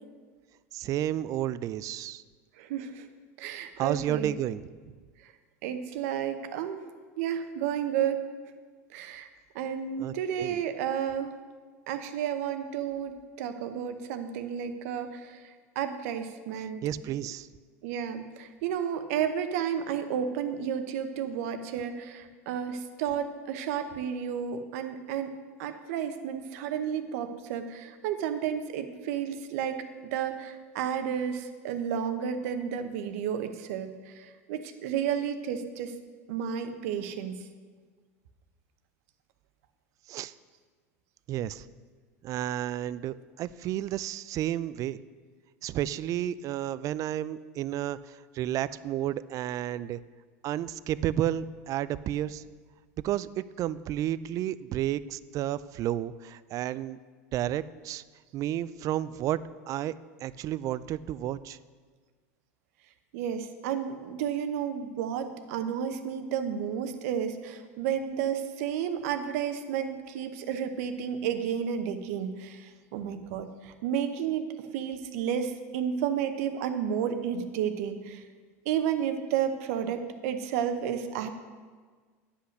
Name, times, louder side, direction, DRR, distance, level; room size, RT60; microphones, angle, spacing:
voice 1, 0.7-2.2 3.8-4.7 10.0-10.6 16.6-17.5 40.1-40.3 41.3-41.7 42.2-45.0 45.6-50.0 50.4-52.4 53.0-57.0 57.3-58.0 58.3-59.4 59.7-59.9 60.2-61.6, right 12 dB, 40° right, 17 dB, 0.4 m, -31 dB
voice 2, 2.6-3.1 3.4-4.4 5.6-6.8 7.2-8.2 8.9-9.3 9.5-11.4 11.9-16.8 17.8-25.3 25.6-35.9 36.3-37.4 63.1-78.2 78.7-81.3, right 8 dB, 70° right, 8 dB, 0.9 m, -32 dB
9.8 x 5.8 x 6.5 m, 1.5 s
hypercardioid pair, 100°, 8 cm